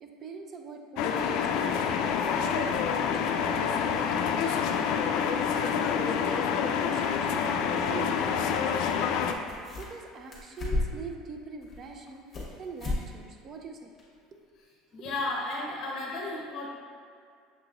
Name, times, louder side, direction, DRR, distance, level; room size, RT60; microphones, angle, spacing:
voice 1, 0.0-9.2 9.8-13.9 15.0-15.1, right 4 dB, 35° right, 3 dB, 0.5 m, -44 dB
sound 1, 1.0-9.3, left 7 dB, 65° left, 0.3 m, -27 dB
sound 2, 8.9-9.0 9.2-10.0 10.3-11.1 11.6-12.5 12.8-13.0 13.4-13.5 14.0-14.1, left 2 dB, 25° left, 1.2 m, -33 dB
voice 2, 14.9-16.7, left 2 dB, 45° left, -3 dB, 0.8 m, -33 dB
6.5 x 3.0 x 2.5 m, 2.2 s
supercardioid pair, 125°, 0 cm